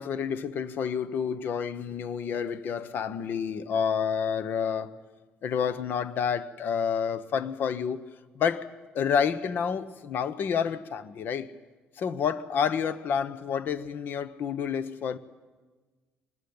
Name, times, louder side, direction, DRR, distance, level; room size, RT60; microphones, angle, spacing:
voice 1, 0.0-4.9 5.4-8.0 8.3-8.7 8.9-11.5 12.0-15.2, left 7 dB, 60° left, 1.2 m, -29 dB
24.5 x 20.0 x 8.8 m
cardioid pair, 130°, 4 cm